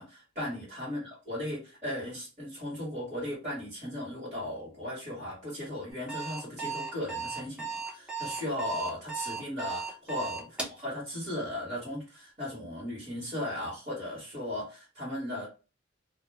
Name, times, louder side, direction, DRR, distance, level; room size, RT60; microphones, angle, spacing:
voice 1, 0.0-15.5, left 1 dB, 35° right, -8 dB, 1.4 m, -37 dB
Alarm, 5.9-10.8, right 5 dB, 5° right, 0.7 m, -36 dB
2.4 x 2.2 x 3.3 m, 0.32 s
head